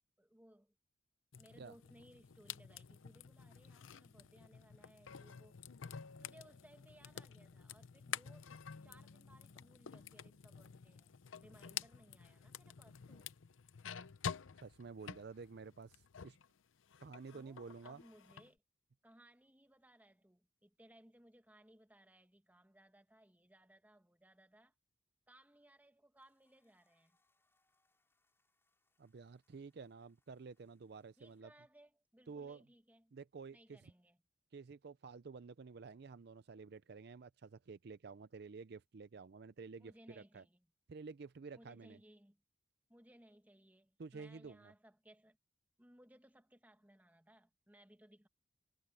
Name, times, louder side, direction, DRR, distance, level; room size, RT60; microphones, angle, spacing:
voice 1, 0.2-0.7 1.4-5.6 6.2-8.5 8.8-13.3 17.3-18.6 19.0-24.7 25.3-27.2 31.2-33.2 33.5-34.2 39.8-40.7 41.6-42.4 42.9-45.4 45.8-48.3, right 1 dB, 10° right, 1.6 m, -64 dB
sound 1, 1.3-16.5 16.8-18.5, left 7 dB, 90° left, 0.6 m, -50 dB
voice 2, 14.6-16.4 17.0-18.0 29.0-31.5 32.3-32.6 33.1-33.9 34.5-40.4 40.9-42.0 44.0-44.7, right 4 dB, 55° right, 0.5 m, -51 dB
sound 2, 26.2-31.4, left 2 dB, 15° left, 5.8 m, -84 dB
head